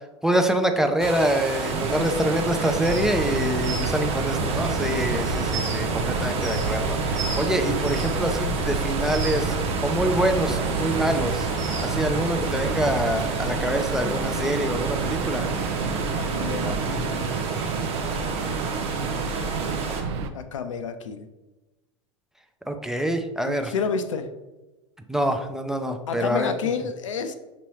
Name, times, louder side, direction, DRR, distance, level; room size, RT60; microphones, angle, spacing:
voice 1, 0.2-9.6 9.8-11.5 11.8-15.5 22.7-23.7 25.1-26.5, equal, 5° right, 5 dB, 0.4 m, -25 dB
sound 1, 1.0-20.0, right 4 dB, 40° right, 1.0 m, -31 dB
sound 2, 1.7-20.3, right 5 dB, 65° right, 0.5 m, -30 dB
voice 2, 1.9-2.3 16.2-17.2 20.3-21.3 23.5-24.3 26.1-27.3, left 6 dB, 80° left, 10 dB, 0.4 m, -30 dB
sound 3, 2.8-13.1, right 2 dB, 85° right, 1.1 m, -33 dB
5.9 x 2.9 x 3.1 m, 1.1 s
hypercardioid pair, 85°, 16 cm